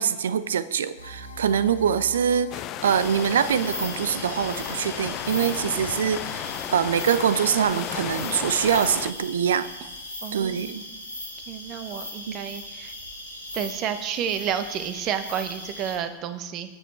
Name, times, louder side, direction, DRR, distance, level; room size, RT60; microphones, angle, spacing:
voice 1, 0.0-6.4 6.7-9.7 10.3-10.8 12.3-12.4, right 8 dB, 65° right, 16 dB, 0.6 m, -24 dB
sound 1, 1.0-6.8, equal, 85° left, 1.6 m, -43 dB
sound 2, 2.5-9.1, left 13 dB, 35° left, 0.5 m, -34 dB
sound 3, 2.8-16.0, left 1 dB, 90° right, 2.2 m, -38 dB
voice 2, 10.2-10.8 11.5-12.9 13.5-16.7, right 9 dB, 35° right, 10 dB, 1.0 m, -30 dB
19.0 x 7.4 x 4.4 m, 1.1 s
figure-of-eight pair, 90°, 0 cm